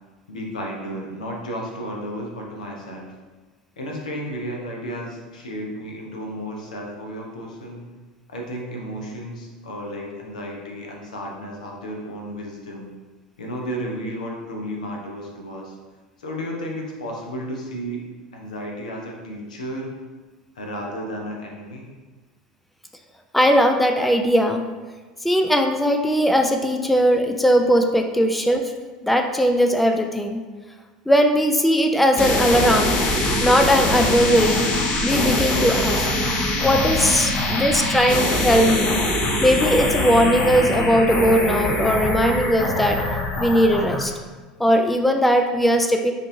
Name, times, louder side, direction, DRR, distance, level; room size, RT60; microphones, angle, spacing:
voice 1, 0.3-3.1 3.8-7.9 8.3-12.9 13.4-15.8 16.2-18.0 18.3-19.9 20.5-21.9, equal, 80° left, 0 dB, 0.7 m, -33 dB
voice 2, 23.3-24.7 25.2-28.7 29.0-30.4 31.1-33.0 33.4-34.7 35.0-36.1 36.6-39.0 39.4-43.0 43.4-44.1 44.6-46.1, equal, ahead, 5 dB, 0.3 m, -19 dB
sound 1, 32.2-44.1, left 1 dB, 30° left, 0.7 m, -23 dB
5.0 x 2.6 x 2.7 m, 1.3 s
figure-of-eight pair, 80°, 4 cm